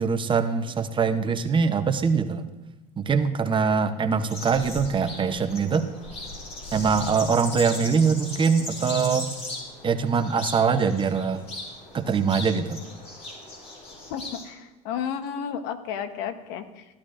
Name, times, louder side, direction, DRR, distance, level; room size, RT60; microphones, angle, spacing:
voice 1, 0.0-2.5 3.0-5.9 6.7-9.3 9.8-11.4 11.9-12.8, right 5 dB, 25° right, 9 dB, 0.7 m, -23 dB
sound 1, 4.2-14.4, left 2 dB, 35° left, 4.1 m, -38 dB
voice 2, 14.1-16.9, left 8 dB, 70° left, 10 dB, 1.0 m, -32 dB
14.5 x 11.5 x 2.5 m, 1.1 s
supercardioid pair, 110°, 19 cm